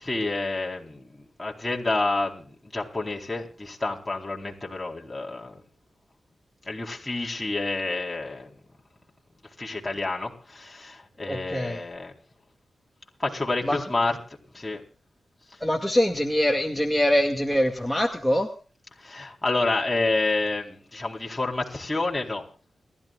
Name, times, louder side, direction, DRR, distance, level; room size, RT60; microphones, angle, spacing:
voice 1, 0.0-5.6 6.6-8.5 9.6-12.1 13.2-14.2 14.5-14.8 19.0-22.5, left 2 dB, 20° left, 4.2 m, -29 dB
voice 2, 11.3-11.8 13.6-13.8 15.6-18.5, equal, ahead, 2.1 m, -23 dB
29.5 x 12.5 x 2.5 m
cardioid pair, 70°, 0 cm